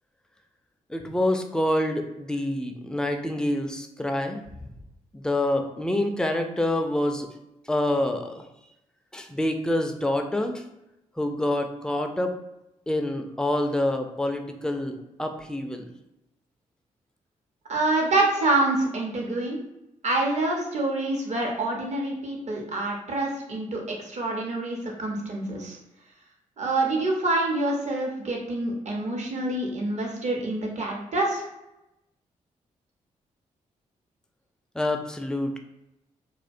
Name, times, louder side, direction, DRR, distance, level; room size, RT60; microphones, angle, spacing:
voice 1, 0.9-4.4 5.1-7.3 7.7-8.4 9.1-10.6 11.2-12.3 12.9-15.8 34.8-35.6, left 1 dB, 5° left, 4 dB, 0.4 m, -27 dB
voice 2, 17.7-19.6 20.0-25.8 26.6-31.4, right 2 dB, 50° right, 0 dB, 0.8 m, -26 dB
2.3 x 2.1 x 2.6 m, 0.91 s
supercardioid pair, 45°, 15 cm